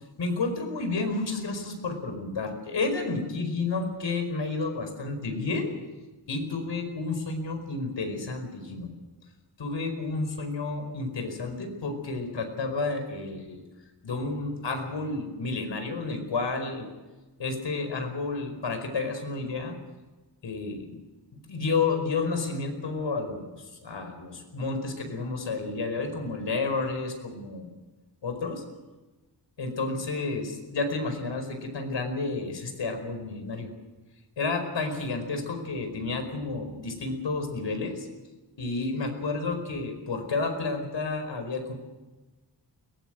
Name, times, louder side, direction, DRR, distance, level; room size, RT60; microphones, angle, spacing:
voice 1, 0.2-5.7 6.3-8.9 9.6-13.6 14.0-16.9 17.4-19.7 20.4-21.0 21.3-27.7 28.2-28.6 29.6-33.7 34.4-38.1 38.6-41.7, left 3 dB, 75° left, 6 dB, 5.0 m, -31 dB
22.0 x 19.5 x 7.8 m, 1.2 s
wide cardioid pair, 140°, 44 cm